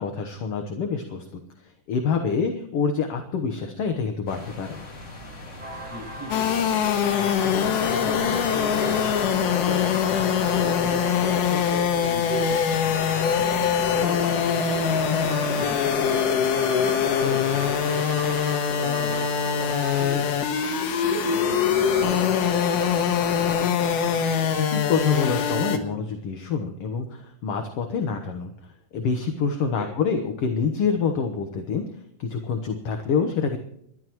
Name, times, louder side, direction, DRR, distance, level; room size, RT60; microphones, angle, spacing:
voice 1, 0.0-1.4 1.9-4.8 24.6-28.5 28.9-31.8 32.2-33.6, left 5 dB, 60° left, 5 dB, 1.8 m, -26 dB
sound 1, 4.3-14.1, left 2 dB, 25° left, 2.2 m, -41 dB
sound 2, 5.6-20.1, right 4 dB, 55° right, 2.5 m, -40 dB
voice 2, 5.8-7.1 7.3-10.1 10.5-16.4 16.8-19.3 19.5-20.5 21.0-23.7 29.6-29.9, equal, 5° right, -3 dB, 7.3 m, -37 dB
sound 3, 6.3-25.8, left 7 dB, 85° left, 3.0 m, -23 dB
29.5 x 12.5 x 3.1 m, 0.71 s
omnidirectional pair, 3.6 m